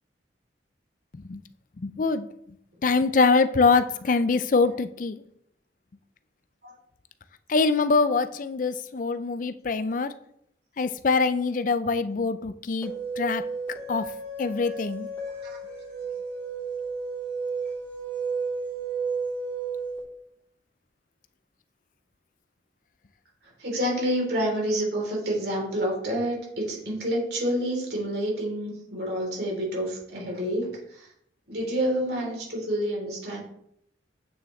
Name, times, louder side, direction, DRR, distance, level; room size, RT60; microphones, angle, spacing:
voice 1, 1.8-2.3 2.8-5.2 7.5-10.1 10.8-12.9 13.2-13.4 13.9-14.1 14.4-15.1, left 4 dB, 45° left, 0.4 m, -24 dB
sound 1, 12.8-20.0, right 4 dB, 10° left, 3.4 m, -32 dB
voice 2, 23.6-31.1 31.5-33.4, equal, 60° right, 3.4 m, -28 dB
8.4 x 6.9 x 3.2 m
head